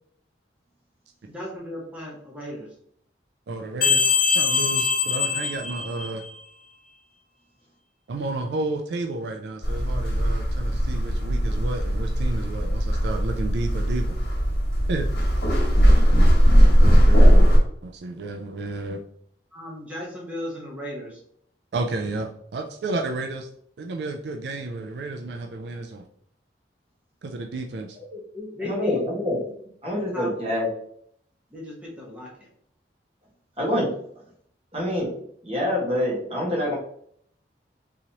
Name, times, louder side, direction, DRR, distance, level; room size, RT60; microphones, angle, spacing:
voice 1, 1.2-2.7 19.5-21.2 27.9-29.3 30.1-30.3 31.5-32.5, left 1 dB, 5° right, -4 dB, 0.9 m, -36 dB
voice 2, 3.5-4.0 4.3-6.2 8.1-14.2 14.9-15.1 16.6-17.5 17.8-19.0 21.7-23.5 23.8-26.0 27.2-28.0, right 2 dB, 70° right, 4 dB, 0.4 m, -31 dB
sound 1, 3.8-6.4, left 5 dB, 45° left, 0.8 m, -23 dB
sound 2, 9.6-17.6, equal, 60° left, 1.4 m, -18 dB
voice 3, 28.6-29.4 29.8-30.7 33.6-33.9 34.7-35.1 35.4-36.7, left 1 dB, 30° right, -4 dB, 1.4 m, -25 dB
3.8 x 3.0 x 2.8 m, 0.66 s
head